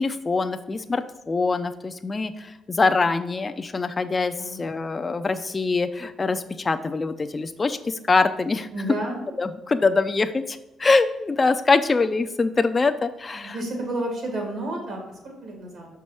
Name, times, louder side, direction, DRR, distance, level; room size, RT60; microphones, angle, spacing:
voice 1, 0.0-8.7 9.4-13.5, left 3 dB, 30° left, 8 dB, 0.4 m, -24 dB
voice 2, 8.7-9.2 13.3-15.9, right 1 dB, 70° right, 0 dB, 2.4 m, -31 dB
6.1 x 4.7 x 4.3 m, 0.98 s
cardioid pair, 90°, 0 cm